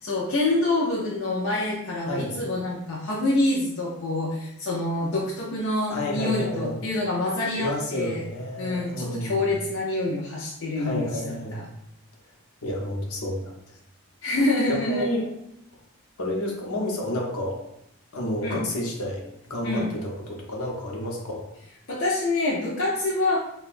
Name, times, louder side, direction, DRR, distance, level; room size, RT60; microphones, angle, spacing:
voice 1, 0.0-8.2 8.6-11.2 11.5-11.6 14.2-15.1 18.4-18.6 19.6-19.9 21.9-23.4, left 2 dB, 60° left, -4 dB, 0.5 m, -26 dB
voice 2, 2.0-2.4 5.9-6.8 7.6-9.5 10.8-11.6 12.6-13.4 14.7-15.3 16.2-17.6 18.1-21.5, left 1 dB, 80° left, -1 dB, 0.9 m, -30 dB
5.5 x 2.3 x 2.5 m, 0.78 s
head